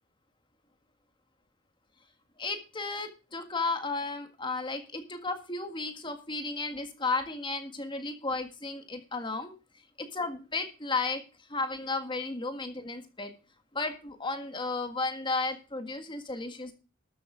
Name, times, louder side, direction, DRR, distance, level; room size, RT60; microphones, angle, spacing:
voice 1, 2.4-9.5 10.0-11.2 11.5-13.3 13.7-16.7, left 3 dB, 25° left, 7 dB, 1.7 m, -33 dB
13.0 x 8.0 x 5.0 m, 0.33 s
head